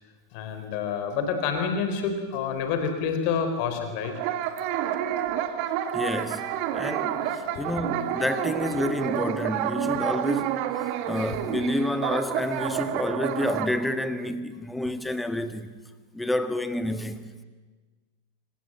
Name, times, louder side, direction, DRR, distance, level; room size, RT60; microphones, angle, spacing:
voice 1, 0.3-4.1 7.4-7.8, left 6 dB, 45° left, 3.8 m, -28 dB
sound 1, 4.0-13.7, right 11 dB, 45° right, 1.8 m, -29 dB
voice 2, 5.9-10.6 11.1-15.8 16.1-17.4, left 1 dB, 5° left, 1.7 m, -29 dB
26.0 x 19.5 x 7.8 m
figure-of-eight pair, 90°, 0 cm